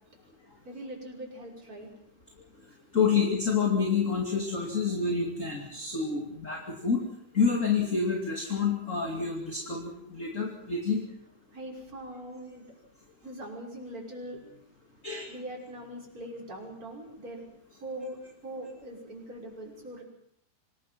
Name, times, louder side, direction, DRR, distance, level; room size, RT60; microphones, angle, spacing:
voice 1, 0.6-1.9 11.5-12.7 13.2-14.6 15.3-17.4 17.8-20.0, right 1 dB, 20° right, -1 dB, 6.1 m, -41 dB
voice 2, 2.9-7.0 7.3-11.0 15.0-15.3, left 5 dB, 25° left, 1 dB, 2.2 m, -28 dB
26.5 x 19.5 x 5.9 m, 0.68 s
omnidirectional pair, 4.5 m